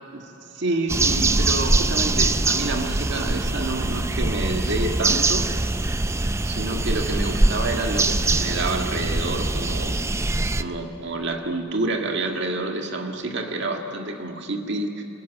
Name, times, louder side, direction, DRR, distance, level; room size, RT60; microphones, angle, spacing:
voice 1, 0.1-5.5 6.1-10.0 10.6-15.0, right 2 dB, 55° right, 3 dB, 1.8 m, -28 dB
sound 1, 0.9-10.6, right 2 dB, 15° right, 0.4 m, -23 dB
28.0 x 15.0 x 9.3 m, 3.0 s
head